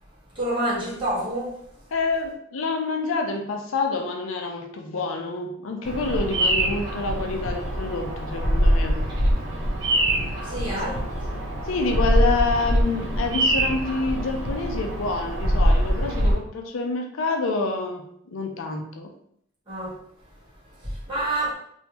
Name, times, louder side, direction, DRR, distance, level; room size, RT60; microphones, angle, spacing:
voice 1, 0.3-1.5 10.4-11.0 19.7-19.9 20.8-21.5, right 1 dB, 25° right, -8 dB, 1.4 m, -27 dB
voice 2, 1.9-9.0 11.6-19.1, left 3 dB, 70° left, 4 dB, 0.5 m, -27 dB
Bird vocalization bird call bird song, 5.8-16.4, equal, 65° right, 1.1 m, -23 dB
3.3 x 2.7 x 2.9 m, 0.70 s
head